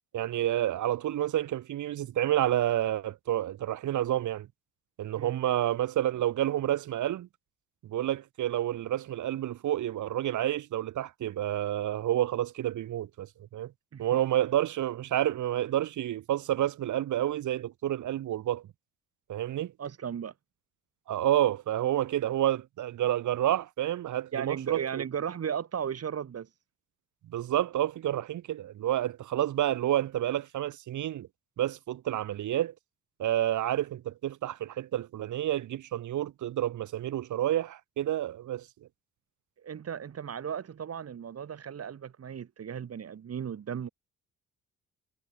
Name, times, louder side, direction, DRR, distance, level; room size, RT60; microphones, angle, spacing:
voice 1, 0.1-4.5 5.0-7.3 7.8-13.7 14.0-18.6 19.3-19.7 21.1-25.0 27.2-31.3 31.6-32.7 33.2-38.7, right 12 dB, 75° right, 3.6 m, -29 dB
voice 2, 19.8-20.3 24.3-26.5 39.6-43.9, right 8 dB, 55° right, 6.2 m, -36 dB
cardioid pair, 90°, 30 cm